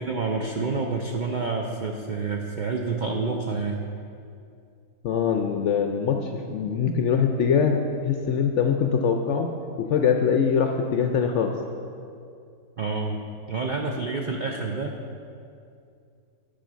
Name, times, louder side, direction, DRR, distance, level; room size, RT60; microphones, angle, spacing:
voice 1, 0.0-3.8 12.8-13.2 13.5-14.9, right 4 dB, 75° right, 2 dB, 0.4 m, -28 dB
voice 2, 5.0-11.6, left 6 dB, 65° left, 4 dB, 0.7 m, -23 dB
10.0 x 5.0 x 6.2 m, 2.5 s
omnidirectional pair, 1.6 m